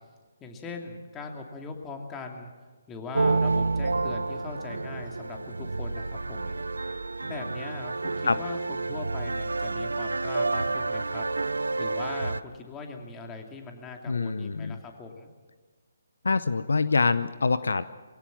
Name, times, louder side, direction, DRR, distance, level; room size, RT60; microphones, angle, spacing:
voice 1, 0.4-2.5 2.9-6.6 7.2-11.2 11.8-15.3, left 3 dB, 15° left, 3 dB, 2.7 m, -40 dB
sound 1, 3.1-12.4, right 3 dB, 80° right, 0.6 m, -29 dB
voice 2, 14.1-14.8 16.2-17.8, left 4 dB, 70° left, 15 dB, 0.7 m, -25 dB
23.5 x 17.0 x 7.5 m, 1.4 s
figure-of-eight pair, 140°, 0 cm